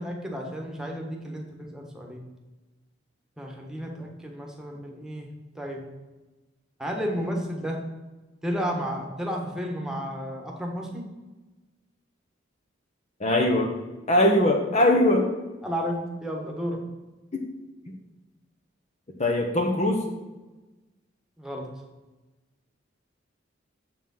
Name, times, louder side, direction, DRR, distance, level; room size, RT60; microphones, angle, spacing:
voice 1, 0.0-2.2 3.4-5.3 5.5-5.8 6.8-7.8 8.4-11.0 15.6-16.8 21.4-21.7, equal, 5° right, 0 dB, 1.5 m, -32 dB
voice 2, 13.2-13.7 14.1-15.3 17.3-17.5 19.2-20.1, left 1 dB, 35° left, 3 dB, 0.9 m, -21 dB
7.5 x 7.2 x 5.5 m, 1.2 s
head